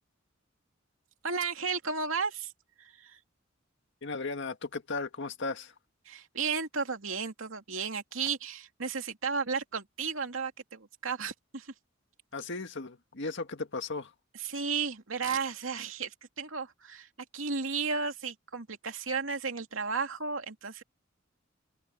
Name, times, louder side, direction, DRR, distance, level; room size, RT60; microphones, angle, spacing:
voice 1, 1.2-2.5 2.8-3.2 6.1-11.7 14.4-20.8, right 5 dB, 80° right, 2.6 m, -34 dB
voice 2, 4.0-5.7 12.3-14.1, left 3 dB, 65° left, 1.8 m, -36 dB
head